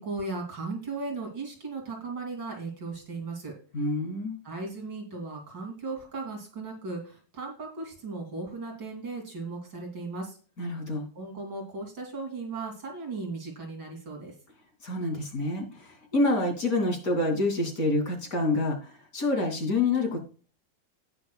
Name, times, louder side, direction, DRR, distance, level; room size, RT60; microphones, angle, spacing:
voice 1, 0.0-3.5 4.4-10.4 11.1-14.3, right 3 dB, 80° right, 1 dB, 3.7 m, -36 dB
voice 2, 3.7-4.4 10.6-11.1 14.8-20.2, left 2 dB, 55° left, 1 dB, 3.3 m, -27 dB
18.0 x 6.2 x 2.3 m, 0.39 s
omnidirectional pair, 1.9 m